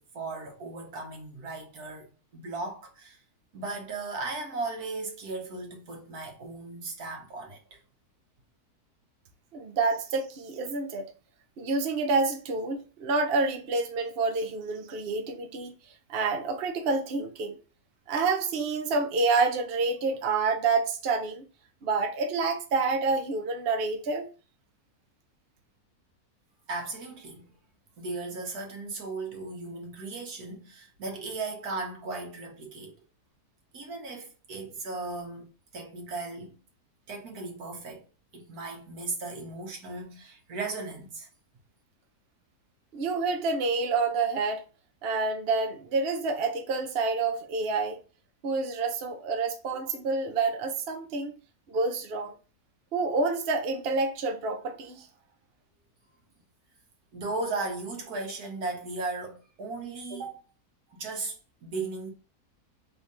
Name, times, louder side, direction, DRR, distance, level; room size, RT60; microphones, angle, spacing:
voice 1, 0.0-3.2 3.5-7.8 26.7-27.5 28.0-33.0 33.7-35.5 35.7-36.6 37.1-38.0 38.3-41.3 57.1-60.4 60.9-62.1, right 3 dB, 80° right, 1.6 m, -36 dB
voice 2, 9.5-11.1 11.6-15.7 16.1-17.6 18.1-21.4 21.8-24.2 42.9-44.6 45.0-48.0 48.4-51.3 51.7-52.3 52.9-55.1, right 3 dB, 50° right, 0.8 m, -28 dB
3.6 x 2.8 x 4.7 m
omnidirectional pair, 1.6 m